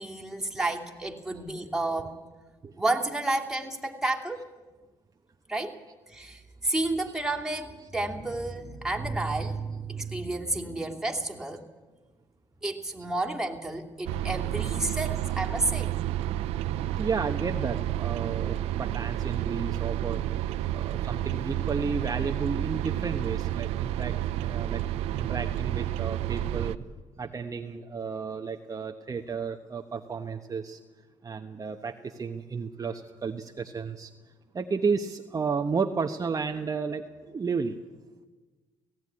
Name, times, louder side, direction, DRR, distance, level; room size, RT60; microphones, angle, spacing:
voice 1, 0.0-2.1 2.8-4.5 5.5-5.8 6.1-11.6 12.6-15.9, right 2 dB, 5° right, 1 dB, 2.8 m, -31 dB
sound 1, 14.1-26.8, right 13 dB, 85° right, 0.6 m, -30 dB
voice 2, 17.0-20.2 20.7-24.1 24.4-24.8 25.2-26.7 27.2-30.8 31.2-31.9 32.2-34.1 34.5-37.0 37.3-37.7, right 5 dB, 35° right, 5 dB, 1.1 m, -32 dB
17.5 x 15.5 x 9.8 m, 1.3 s
supercardioid pair, 70°, 10 cm